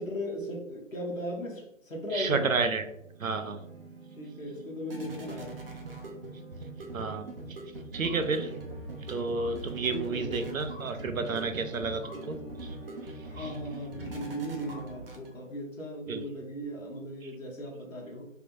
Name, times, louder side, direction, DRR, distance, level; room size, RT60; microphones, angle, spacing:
voice 1, 0.0-2.5 4.2-5.6 9.9-10.5 13.2-18.3, equal, 75° left, -1 dB, 1.2 m, -37 dB
voice 2, 2.1-2.9 3.2-3.6 6.9-7.6 7.9-8.5 9.1-12.8 13.4-13.5 16.1-16.3, right 4 dB, 80° right, 8 dB, 0.6 m, -31 dB
sound 1, 2.9-15.6, right 2 dB, 45° right, 0.7 m, -42 dB
3.4 x 2.8 x 2.6 m, 0.80 s
figure-of-eight pair, 145°, 40 cm